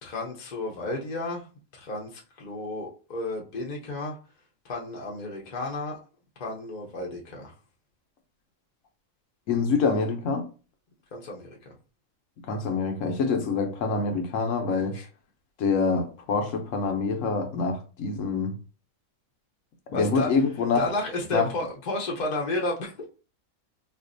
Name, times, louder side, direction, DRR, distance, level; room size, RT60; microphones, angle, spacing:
voice 1, 0.0-1.5 1.7-4.1 4.6-6.0 6.4-7.5 11.1-11.7 14.9-15.1 19.9-20.3 20.8-23.1, left 2 dB, 40° left, 0.7 m, -32 dB
voice 2, 9.5-10.5 12.5-15.0 15.6-18.5 19.9-20.9 21.3-21.5, left 4 dB, 70° left, 1.0 m, -26 dB
4.3 x 2.5 x 2.5 m
omnidirectional pair, 1.5 m